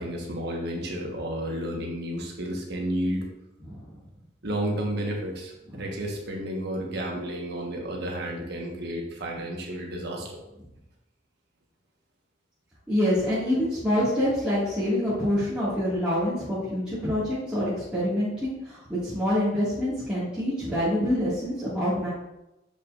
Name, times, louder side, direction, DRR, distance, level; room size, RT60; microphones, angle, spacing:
voice 1, 0.0-3.2 4.4-10.4, right 1 dB, 60° right, 0 dB, 1.3 m, -31 dB
voice 2, 3.6-4.0 5.7-5.9 12.9-22.1, equal, 5° right, -12 dB, 1.9 m, -26 dB
6.9 x 5.5 x 2.5 m, 0.91 s
head